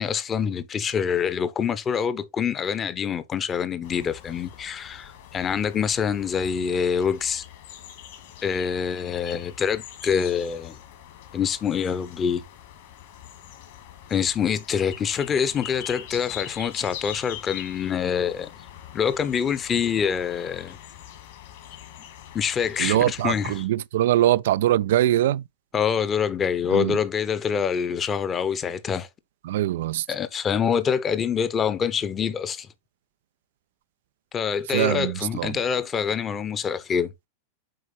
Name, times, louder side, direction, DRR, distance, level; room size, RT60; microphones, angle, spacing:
voice 1, 0.0-7.4 8.4-10.8 11.3-12.4 14.1-18.5 18.9-20.8 22.3-23.5 25.7-29.1 30.1-32.7 34.3-37.1, left 7 dB, 25° left, 0.9 m, -25 dB
sound 1, 3.8-23.7, left 10 dB, 55° left, 2.3 m, -43 dB
voice 2, 22.8-25.5 26.7-27.0 29.4-30.1 34.7-35.6, right 13 dB, 55° right, 0.3 m, -22 dB
7.8 x 5.0 x 3.2 m
figure-of-eight pair, 90°, 0 cm